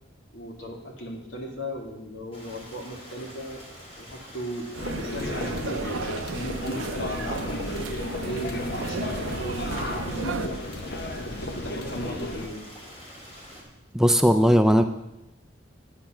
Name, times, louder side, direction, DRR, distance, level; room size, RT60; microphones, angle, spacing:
voice 1, 0.3-3.6 4.0-5.9 6.3-7.7 8.2-10.6 11.2-12.7, equal, 80° left, 0 dB, 2.2 m, -37 dB
Stream, 2.3-13.6, equal, 30° left, 2.6 m, -46 dB
sound 1, 4.7-10.5, right 5 dB, 90° right, 0.5 m, -35 dB
sound 2, 4.8-12.5, left 1 dB, 55° left, 1.0 m, -33 dB
voice 2, 13.9-14.8, equal, 5° right, 8 dB, 0.3 m, -18 dB
9.7 x 8.5 x 5.9 m, 0.95 s
head